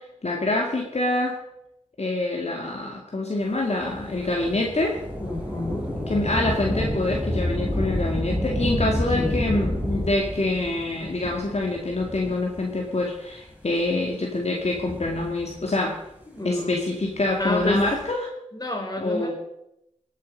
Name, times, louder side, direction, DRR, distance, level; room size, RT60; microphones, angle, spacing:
voice 1, 0.2-1.3 2.0-5.0 6.1-16.0 16.4-18.3 19.0-19.3, left 2 dB, 60° left, 0 dB, 2.2 m, -26 dB
Thunder / Rain, 3.8-12.8 13.5-13.6 14.5-15.8 17.3-18.1, equal, 10° right, 5.4 m, -29 dB
voice 2, 5.2-5.9 9.2-9.4 16.3-16.8 17.4-17.8 18.5-19.3, left 1 dB, 30° left, 2 dB, 4.0 m, -29 dB
19.0 x 8.2 x 5.3 m, 0.83 s
wide cardioid pair, 45°, 12 cm